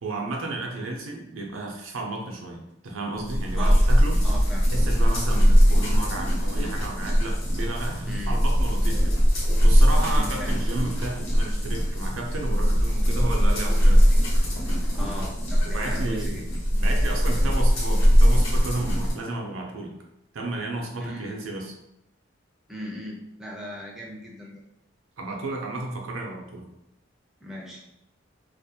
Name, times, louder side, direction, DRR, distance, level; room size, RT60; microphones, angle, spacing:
voice 1, 0.0-4.2 4.5-9.2 9.6-14.2 15.6-16.4 16.8-19.9 20.3-21.7 25.2-26.7, right 2 dB, 80° right, 1 dB, 0.5 m, -33 dB
sound 1, 3.2-19.1, equal, 80° left, 1.0 m, -21 dB
voice 2, 4.2-4.7 8.0-8.4 10.1-10.6 14.9-16.4 21.0-21.3 22.7-24.6 27.4-27.8, equal, ahead, -3 dB, 0.4 m, -38 dB
2.4 x 2.1 x 2.7 m, 0.81 s
head